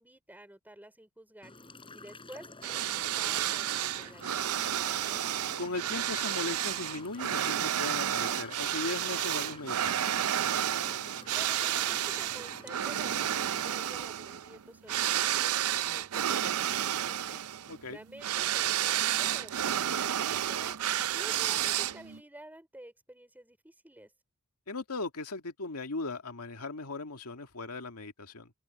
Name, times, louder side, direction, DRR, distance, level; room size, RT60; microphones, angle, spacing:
voice 1, 0.0-1.5 1.9-5.3 11.3-17.4 17.9-20.8 21.1-24.1, right 1 dB, 10° right, 5.1 m, -51 dB
sound 1, 1.4-13.8, left 3 dB, 25° left, 5.9 m, -50 dB
sound 2, 2.6-22.2, right 11 dB, 75° right, 0.5 m, -31 dB
voice 2, 5.6-10.0 17.7-18.0 24.7-28.5, left 3 dB, 90° left, 2.1 m, -38 dB
head